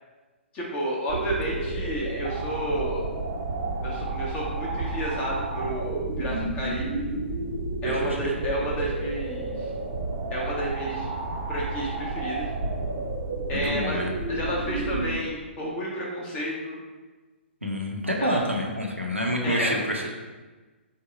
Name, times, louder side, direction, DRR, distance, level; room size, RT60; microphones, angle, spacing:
voice 1, 0.5-3.0 3.8-7.0 7.8-9.7 10.3-11.1 11.5-12.5 13.5-16.8 18.2-18.4 19.4-19.8, equal, 20° left, -4 dB, 0.7 m, -31 dB
sound 1, 1.1-15.1, right 3 dB, 40° right, 0.6 m, -31 dB
voice 2, 7.9-8.2 13.6-14.1 17.6-20.2, equal, 90° right, 0 dB, 0.7 m, -28 dB
3.6 x 2.1 x 4.3 m, 1.3 s
figure-of-eight pair, 120°, 7 cm